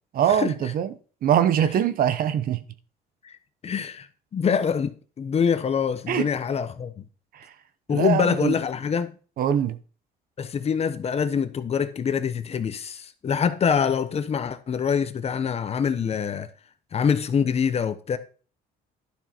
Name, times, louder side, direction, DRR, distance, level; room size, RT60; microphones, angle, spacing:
voice 1, 0.1-0.9 1.2-2.6 6.1-6.3 7.3-7.5 7.9-8.5 9.4-9.8, right 9 dB, 60° right, 1.0 m, -22 dB
voice 2, 3.6-7.0 7.9-9.1 10.4-16.5 16.9-18.2, left 7 dB, 40° left, 1.0 m, -25 dB
11.5 x 6.4 x 4.5 m
cardioid pair, 110°, 17 cm